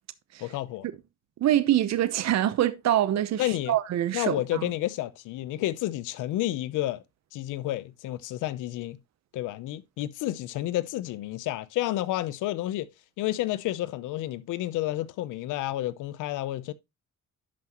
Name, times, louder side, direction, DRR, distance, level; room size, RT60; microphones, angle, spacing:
voice 1, 0.4-0.9 3.4-3.7 4.1-7.0 7.3-9.0 9.3-12.9 13.2-16.7, left 15 dB, 90° left, 0.7 m, -30 dB
voice 2, 1.4-4.7, right 12 dB, 60° right, 0.8 m, -25 dB
11.0 x 5.9 x 3.0 m
cardioid pair, 90°, 30 cm